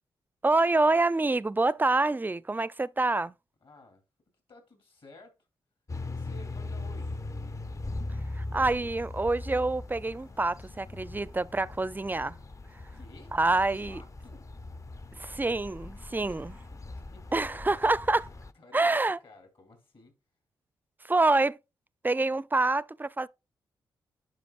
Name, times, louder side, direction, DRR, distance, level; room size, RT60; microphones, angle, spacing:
voice 1, 0.4-3.3 8.3-12.4 13.3-14.0 15.1-16.6 17.3-18.3 18.7-19.2 21.0-21.6 22.0-23.3, right 2 dB, 20° right, 0.4 m, -26 dB
voice 2, 3.6-4.0 4.5-5.3 6.0-7.2 12.7-13.6 13.9-14.5 16.2-16.4 16.7-17.6 18.6-20.2, left 2 dB, 60° left, 3.5 m, -54 dB
sound 1, 5.9-18.5, left 2 dB, 30° left, 0.6 m, -40 dB
10.5 x 5.0 x 2.4 m
hypercardioid pair, 40°, 10 cm